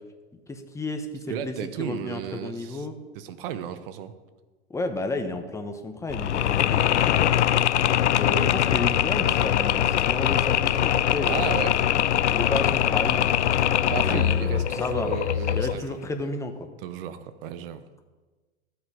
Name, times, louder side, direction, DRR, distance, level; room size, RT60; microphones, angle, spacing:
voice 1, 0.5-2.9 4.7-7.3 8.2-11.4 11.9-13.4 14.0-15.1 15.5-16.7, left 2 dB, 10° left, 6 dB, 1.1 m, -32 dB
voice 2, 1.3-2.9 3.1-4.1 11.2-11.8 13.9-16.0 16.8-17.9, right 10 dB, 55° right, 12 dB, 1.1 m, -34 dB
Mechanisms, 6.1-15.9, left 10 dB, 85° left, 0.5 m, -22 dB
13.5 x 8.2 x 5.1 m, 1.3 s
hypercardioid pair, 110°, 34 cm